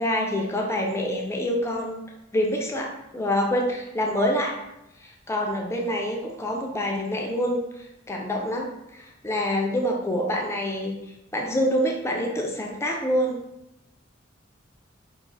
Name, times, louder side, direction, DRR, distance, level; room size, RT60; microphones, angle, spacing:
voice 1, 0.0-2.0 2.3-4.6 5.0-11.0 11.3-13.4, equal, 15° left, 1 dB, 0.5 m, -26 dB
4.8 x 2.5 x 4.0 m, 0.89 s
head